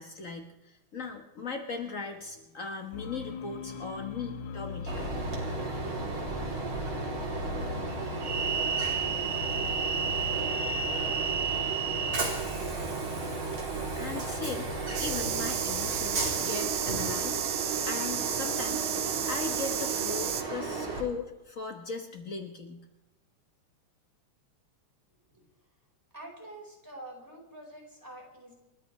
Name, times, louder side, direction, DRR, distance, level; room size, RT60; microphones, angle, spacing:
voice 1, 0.0-5.2 13.9-14.7 15.0-17.4 17.9-18.9 19.3-22.8, left 4 dB, 80° left, 4 dB, 0.7 m, -38 dB
sound 1, 2.9-12.5, left 5 dB, 60° left, 1.3 m, -41 dB
Train, 4.9-21.0, right 4 dB, 45° right, 3.9 m, -32 dB
sound 2, 14.9-20.4, right 10 dB, 85° right, 2.5 m, -32 dB
voice 2, 26.1-28.5, right 1 dB, 5° right, -1 dB, 4.3 m, -46 dB
29.0 x 13.5 x 3.2 m, 1.0 s
omnidirectional pair, 3.5 m